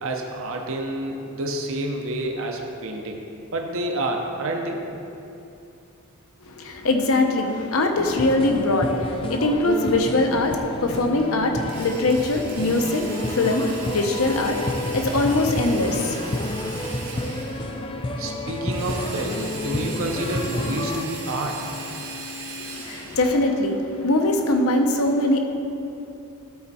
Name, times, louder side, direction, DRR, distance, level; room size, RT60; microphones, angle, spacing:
voice 1, 0.0-3.2 3.5-4.8 18.2-21.7, right 1 dB, 65° right, 2 dB, 0.7 m, -28 dB
voice 2, 6.6-16.3 16.5-16.6 22.7-25.4, left 2 dB, 70° left, 4 dB, 0.8 m, -22 dB
sound 1, 8.0-21.0, left 1 dB, 25° left, 0.4 m, -30 dB
Drill, 11.7-17.8 18.7-23.4, right 2 dB, 80° right, 1.7 m, -37 dB
12.0 x 4.4 x 4.1 m, 2.7 s
head